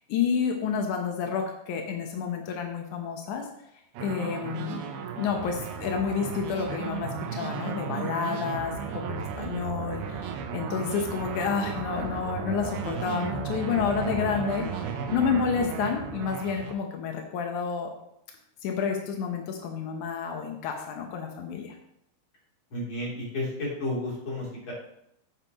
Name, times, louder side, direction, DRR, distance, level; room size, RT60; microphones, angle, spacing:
voice 1, 0.1-3.4 4.0-4.8 5.2-17.9 18.6-21.7, left 6 dB, 90° left, 3 dB, 1.7 m, -30 dB
sound 1, 3.9-16.7, right 7 dB, 75° right, 2.5 m, -34 dB
voice 2, 22.7-24.7, left 1 dB, 30° left, -5 dB, 3.5 m, -32 dB
12.0 x 9.3 x 3.1 m, 0.78 s
omnidirectional pair, 5.2 m